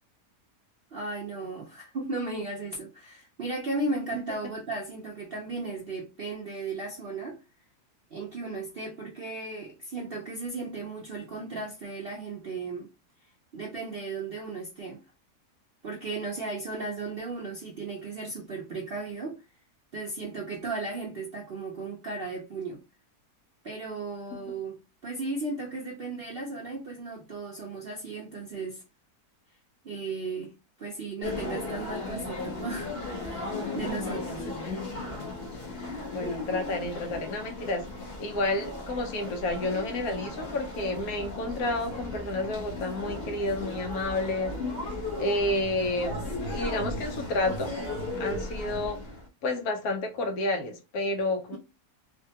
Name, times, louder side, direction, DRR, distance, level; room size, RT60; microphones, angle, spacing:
voice 1, 0.9-7.4 8.1-12.9 13.5-15.0 15.8-19.4 19.9-22.8 23.6-24.8 25.0-28.8 29.8-30.5 30.8-32.9 33.2-34.4, right 3 dB, 60° right, 0.6 m, -35 dB
sound 1, 31.2-49.3, left 2 dB, 40° left, 1.0 m, -36 dB
voice 2, 35.7-37.9 38.2-44.5 45.2-46.2 46.5-47.8 48.2-49.0 49.4-51.6, left 2 dB, 70° left, 1.1 m, -30 dB
3.5 x 2.2 x 2.7 m
omnidirectional pair, 1.7 m